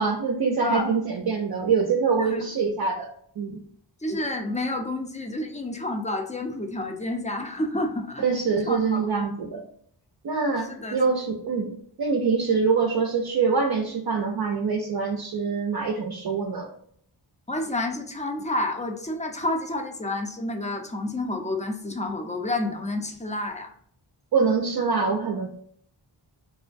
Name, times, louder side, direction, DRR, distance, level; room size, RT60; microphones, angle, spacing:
voice 1, 0.0-3.1 3.4-3.6 8.2-9.6 10.2-11.7 12.0-16.7 24.3-25.5, right 5 dB, 55° right, 2 dB, 0.5 m, -24 dB
voice 2, 4.0-8.3 8.7-9.1 10.6-11.0 17.5-23.7, left 2 dB, 15° left, 3 dB, 0.4 m, -29 dB
2.4 x 2.1 x 2.5 m, 0.63 s
wide cardioid pair, 45°, 47 cm